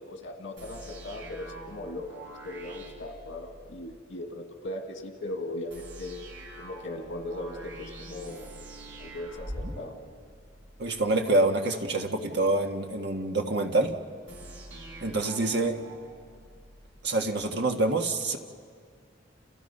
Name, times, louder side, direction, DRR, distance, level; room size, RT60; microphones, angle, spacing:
voice 1, 0.0-6.2 6.6-8.5 9.0-9.9, left 1 dB, 85° left, 4 dB, 1.8 m, -38 dB
sound 1, 0.6-3.8 5.7-10.9 14.3-16.9, right 1 dB, 80° right, 5.1 m, -44 dB
voice 2, 10.8-13.9 15.0-15.8 17.0-18.4, right 2 dB, 60° right, 4 dB, 1.7 m, -26 dB
30.0 x 29.0 x 5.5 m, 2.2 s
head